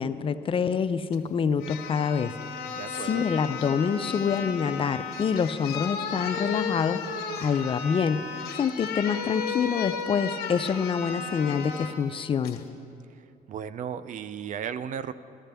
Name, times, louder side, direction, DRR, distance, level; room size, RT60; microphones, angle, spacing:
voice 1, 0.0-2.3 3.0-7.1 7.4-8.2 8.5-12.7, left 6 dB, 30° left, 12 dB, 0.4 m, -26 dB
sound 1, 1.1-1.2 1.6-12.0 12.4-12.6, left 6 dB, 65° left, 1.2 m, -34 dB
voice 2, 2.7-3.3 13.1-13.2 13.5-15.1, right 8 dB, 50° right, 14 dB, 0.4 m, -35 dB
14.5 x 13.5 x 3.4 m, 2.6 s
cardioid pair, 110°, 17 cm